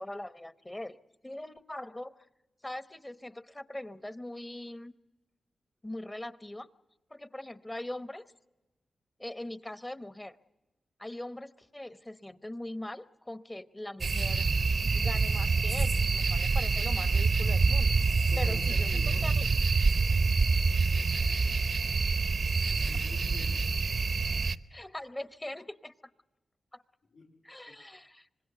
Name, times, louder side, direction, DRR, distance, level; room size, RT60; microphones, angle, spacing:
voice 1, 0.0-2.3 2.6-4.9 5.8-6.7 7.1-8.3 9.2-10.4 11.0-14.5 14.9-17.9 18.4-19.5 21.0-21.4 24.7-25.9 26.7-26.8 27.4-28.3, left 1 dB, 20° left, 1.0 m, -41 dB
sound 1, 14.0-24.6, right 4 dB, 60° right, 0.8 m, -26 dB
voice 2, 18.3-19.3 22.7-23.8 27.1-27.4 27.7-27.8, left 2 dB, 85° left, 3.6 m, -46 dB
25.5 x 20.5 x 6.8 m
cardioid pair, 45°, 0 cm